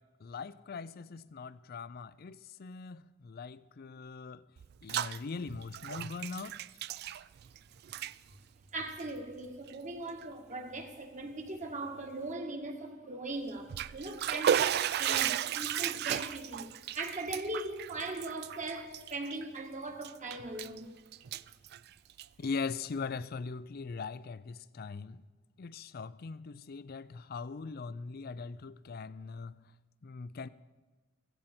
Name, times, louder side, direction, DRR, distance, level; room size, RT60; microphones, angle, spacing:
voice 1, 0.2-4.4 4.8-6.6 22.4-25.2 25.6-29.6 30.0-30.5, left 4 dB, 50° left, 0.5 m, -41 dB
Bathtub (filling or washing), 4.6-5.2 5.5-7.6 7.8-8.1 8.9-9.0 9.7-9.8 10.2-10.3 13.5-19.6 20.0-20.8 21.1-22.4, right 10 dB, 55° right, 0.3 m, -34 dB
voice 2, 8.7-20.9, right 2 dB, 40° right, 1.7 m, -39 dB
16.5 x 15.5 x 4.3 m
head